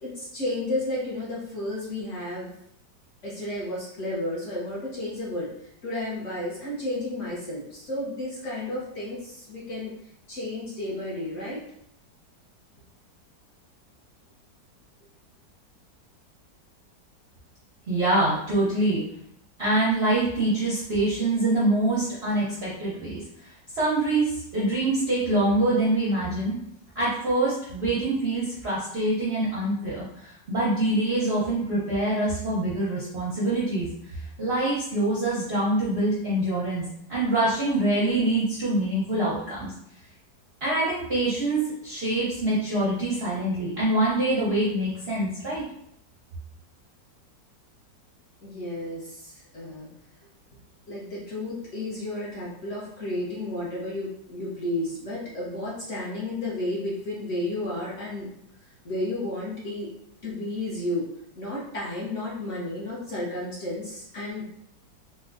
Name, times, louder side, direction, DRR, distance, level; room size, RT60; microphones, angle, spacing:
voice 1, 0.0-2.5 3.2-9.9 10.3-11.6 48.4-49.9 50.9-58.3 58.8-59.9 60.2-61.1 61.4-64.4, left 1 dB, 55° left, -6 dB, 1.0 m, -32 dB
voice 2, 17.9-19.0 19.6-23.2 23.7-26.5 27.0-33.9 34.4-39.7 40.6-45.6, right 1 dB, 55° right, -8 dB, 0.7 m, -25 dB
4.2 x 2.2 x 2.5 m, 0.73 s
omnidirectional pair, 1.9 m